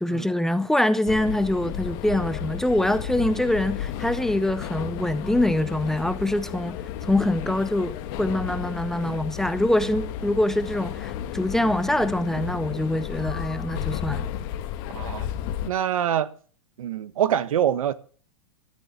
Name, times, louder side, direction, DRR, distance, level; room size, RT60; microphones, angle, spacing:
voice 1, 0.0-14.3, left 1 dB, ahead, 0.6 m, -24 dB
sound 1, 1.1-15.7, left 10 dB, 45° left, 1.6 m, -33 dB
voice 2, 14.9-15.3 15.7-16.3 16.8-17.9, right 10 dB, 85° right, 1.4 m, -25 dB
13.5 x 9.8 x 7.4 m
supercardioid pair, 155°, 17 cm